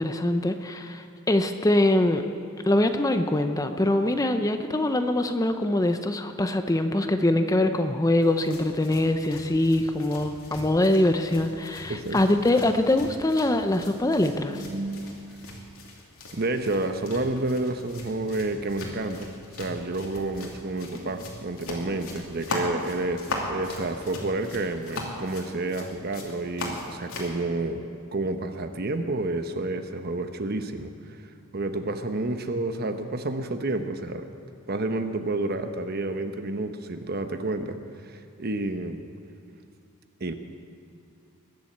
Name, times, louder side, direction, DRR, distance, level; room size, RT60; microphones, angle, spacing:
voice 1, 0.0-2.2 2.6-14.6, left 1 dB, 15° left, 7 dB, 0.6 m, -23 dB
sound 1, 8.2-27.4, left 2 dB, 75° left, 2.7 m, -39 dB
voice 2, 11.9-12.2 14.5-15.2 16.3-27.8 28.1-31.2 31.5-34.3 34.7-37.8 38.0-39.0 40.2-40.3, right 2 dB, 45° right, 8 dB, 0.9 m, -30 dB
21.0 x 7.5 x 8.7 m, 2.6 s
head